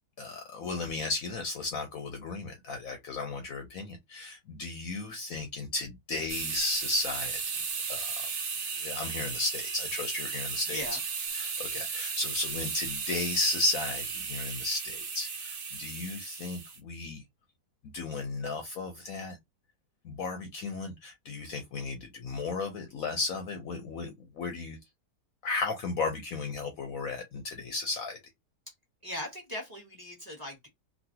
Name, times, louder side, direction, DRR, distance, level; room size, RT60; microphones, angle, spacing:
voice 1, 0.2-7.4 7.9-8.3 8.8-11.0 11.3-17.2 17.9-19.4 20.0-24.8 25.4-28.2, left 3 dB, 65° left, 0.9 m, -34 dB
sound 1, 6.3-16.8, right 5 dB, 55° right, 0.6 m, -35 dB
voice 2, 29.0-30.7, left 1 dB, 15° right, 1.3 m, -39 dB
3.1 x 2.6 x 2.7 m
omnidirectional pair, 1.8 m